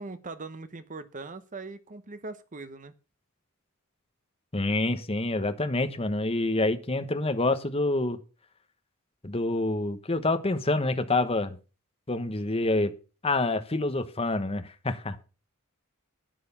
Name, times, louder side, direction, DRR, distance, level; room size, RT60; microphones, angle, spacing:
voice 1, 0.0-2.9, right 3 dB, 35° right, 0.9 m, -40 dB
voice 2, 4.5-8.2 9.2-11.6 12.1-12.9 13.2-15.2, left 2 dB, 25° left, 1.2 m, -27 dB
11.5 x 9.4 x 5.7 m
head